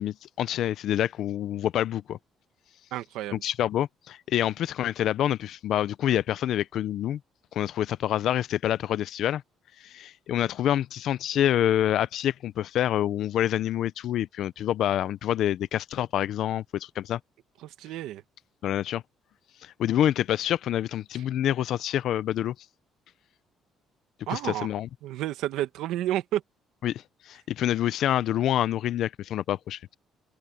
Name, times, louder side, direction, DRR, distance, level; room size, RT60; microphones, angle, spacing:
voice 1, 0.0-2.2 3.3-7.2 7.5-9.4 9.8-17.2 18.6-19.0 19.6-22.5 24.3-24.9 26.8-29.9, left 11 dB, 60° left, 0.5 m, -27 dB
voice 2, 2.9-3.4 17.6-18.2 24.3-24.7 25.0-26.4, right 13 dB, 85° right, 1.4 m, -30 dB
open air
cardioid pair, 160°, 0 cm